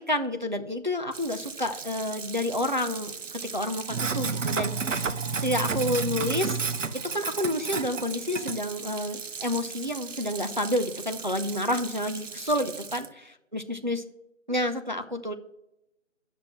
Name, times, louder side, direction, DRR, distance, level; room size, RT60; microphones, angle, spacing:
voice 1, 0.0-3.1 3.4-5.1 5.4-6.6 7.0-13.0 13.5-14.0 14.5-15.3, left 1 dB, 40° right, 7 dB, 0.5 m, -29 dB
Sink (filling or washing), 1.1-13.1, right 5 dB, 70° right, 0.8 m, -33 dB
10.5 x 6.0 x 5.7 m, 0.88 s
figure-of-eight pair, 170°, 39 cm